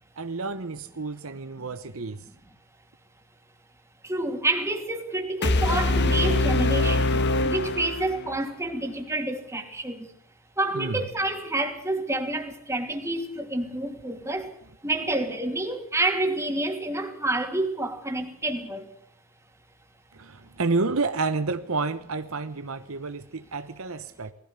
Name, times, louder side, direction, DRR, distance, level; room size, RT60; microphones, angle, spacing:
voice 1, 0.2-2.2 10.7-11.0 20.1-24.3, right 3 dB, 70° right, 10 dB, 1.0 m, -30 dB
voice 2, 4.0-10.1 10.6-14.5 14.8-18.9, right 2 dB, 15° right, 4 dB, 2.8 m, -28 dB
sound 1, 5.4-8.5, left 2 dB, 50° left, 1.5 m, -23 dB
20.5 x 16.0 x 8.3 m, 0.70 s
head